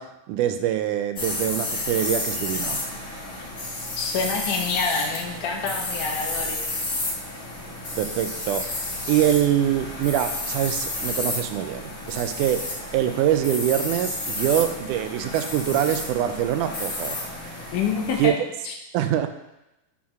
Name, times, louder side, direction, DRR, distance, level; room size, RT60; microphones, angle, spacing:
voice 1, 0.0-2.8 7.9-8.7 9.1-17.2 17.4-17.7 18.2-18.3 18.9-19.3, right 11 dB, 85° right, 8 dB, 2.1 m, -24 dB
sound 1, 1.2-18.3, left 2 dB, 40° left, 1.1 m, -31 dB
voice 2, 4.0-6.7 17.7-18.3 18.6-18.7, left 5 dB, 80° left, 3 dB, 2.6 m, -27 dB
6.3 x 5.6 x 5.8 m, 0.92 s
omnidirectional pair, 3.6 m